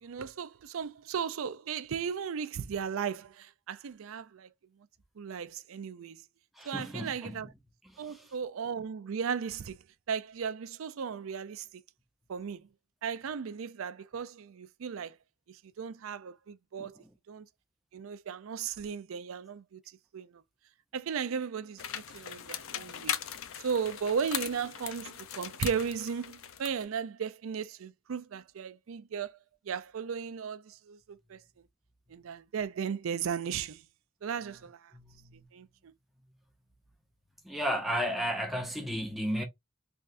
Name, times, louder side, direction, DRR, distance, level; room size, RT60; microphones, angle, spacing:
voice 1, 0.0-4.5 5.2-6.2 6.6-7.5 8.0-9.8 10.1-11.7 12.3-12.7 13.0-15.2 15.5-17.5 17.9-19.8 20.1-20.4 20.9-23.2 23.6-29.4 29.7-31.4 32.1-33.8 34.2-34.9 35.5-35.9, right 6 dB, 85° right, 0.4 m, -36 dB
voice 2, 6.6-7.5 7.9-8.3 16.8-16.9 34.9-35.5 37.4-39.4, equal, ahead, 0.8 m, -34 dB
sound 1, 21.8-26.8, left 9 dB, 85° left, 0.5 m, -39 dB
3.4 x 3.4 x 2.5 m
head